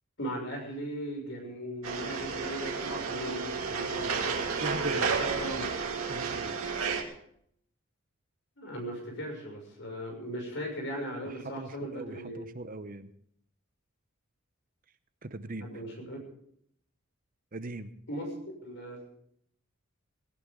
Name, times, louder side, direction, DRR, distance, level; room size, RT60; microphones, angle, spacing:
voice 1, 0.2-4.2 4.9-5.8 8.6-12.4 15.6-16.2 18.1-18.3 18.6-19.0, equal, 60° left, 1 dB, 6.7 m, -38 dB
sound 1, 1.8-7.0, right 5 dB, 90° right, 2.4 m, -32 dB
voice 2, 4.6-5.1 6.1-6.5 11.2-13.1 15.2-15.7 17.5-17.9, right 2 dB, 40° right, 11 dB, 0.8 m, -40 dB
18.0 x 17.5 x 3.8 m, 0.68 s
head